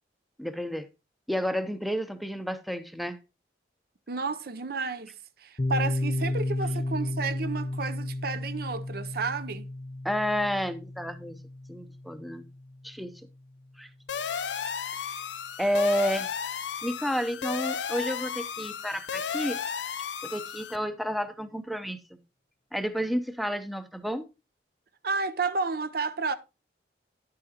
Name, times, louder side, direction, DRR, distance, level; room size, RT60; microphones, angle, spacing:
voice 1, 0.4-0.9 1.3-3.2 10.0-11.4 11.7-12.5 12.8-13.1 13.8-13.9 15.0-15.3 15.6-16.3 16.8-19.6 20.2-22.2 22.7-24.3, equal, ahead, 0.6 m, -30 dB
voice 2, 4.1-5.1 5.4-9.7 25.0-26.3, right 4 dB, 60° right, 0.6 m, -31 dB
Piano, 5.6-13.0, left 1 dB, 40° left, 0.8 m, -33 dB
sound 1, 14.1-20.8, left 7 dB, 80° left, 0.6 m, -34 dB
10.5 x 8.6 x 2.8 m
head